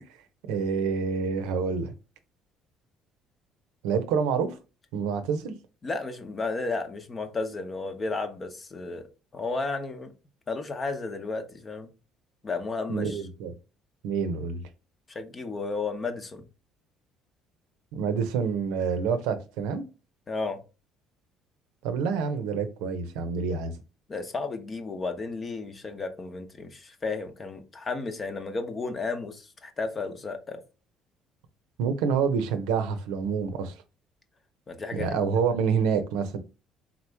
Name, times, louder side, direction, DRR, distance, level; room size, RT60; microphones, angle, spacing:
voice 1, 0.5-1.9 3.8-4.6 4.9-5.5 12.9-13.5 14.0-14.6 17.9-19.8 21.8-23.7 31.8-33.8 34.9-36.4, right 6 dB, 90° right, 0.6 m, -27 dB
voice 2, 5.8-9.1 9.3-10.1 10.5-11.9 12.4-13.2 15.1-16.4 20.3-20.6 24.1-30.6 34.7-35.3, left 3 dB, 30° left, 0.8 m, -33 dB
3.8 x 3.0 x 3.4 m
cardioid pair, 95°, 0 cm